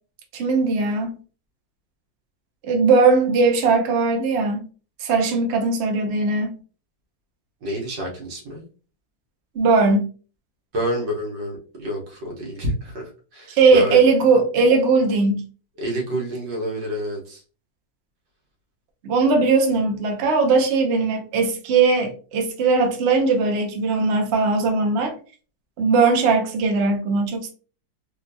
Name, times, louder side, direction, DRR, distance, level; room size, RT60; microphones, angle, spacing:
voice 1, 0.3-1.2 2.6-4.7 5.0-6.6 9.5-10.1 13.5-15.4 19.0-25.1 25.8-27.5, right 4 dB, 55° right, 3 dB, 0.7 m, -19 dB
voice 2, 7.6-8.6 10.7-14.0 15.8-17.4, equal, 75° right, -2 dB, 1.8 m, -28 dB
3.8 x 2.3 x 2.6 m, 0.37 s
omnidirectional pair, 1.9 m